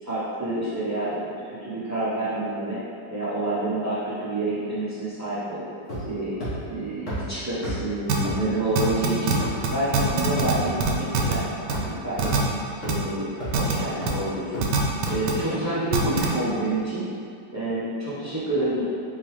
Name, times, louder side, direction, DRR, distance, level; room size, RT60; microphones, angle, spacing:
voice 1, 0.0-2.8 3.1-5.7 6.0-6.4 6.7-9.4 9.7-11.4 11.7-12.3 12.8-14.5 15.1-17.1 17.5-18.8, right 1 dB, 15° right, -12 dB, 0.6 m, -28 dB
sound 1, 5.9-6.1 6.4-6.5 7.1-7.2 7.6-7.7 8.2-8.3 8.8-8.9 9.4-9.6 10.0-10.1 10.6-10.7 11.2-11.3 11.7-11.8 12.2-12.4 12.8-12.9 13.4-13.6 14.0-14.1 14.5-14.6 15.1-15.2, equal, 45° left, 1.6 m, -32 dB
sound 2, 8.1-8.2 8.8-9.3 9.6-9.7 9.9-10.5 10.8-11.3 11.7-11.8 12.2-12.4 12.9-13.0 13.5-13.7 14.1-14.2 14.6-15.3 15.9-16.3, right 7 dB, 80° right, 1.2 m, -22 dB
3.9 x 3.7 x 3.1 m, 2.5 s
omnidirectional pair, 1.9 m